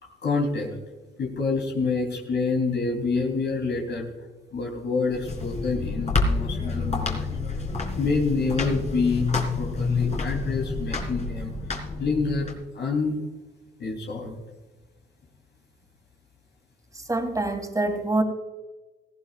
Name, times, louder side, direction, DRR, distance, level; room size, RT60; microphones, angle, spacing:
voice 1, 0.0-0.7 1.2-4.1 4.5-7.3 8.0-11.5 12.0-12.5 12.7-13.2 13.8-14.4, left 4 dB, 60° left, 0 dB, 3.3 m, -27 dB
sound 1, 5.1-12.5, left 3 dB, 35° left, 3.7 m, -28 dB
voice 2, 17.0-18.2, right 2 dB, 15° right, 4 dB, 2.9 m, -25 dB
18.5 x 15.5 x 2.5 m, 1.2 s
cardioid pair, 90°, 20 cm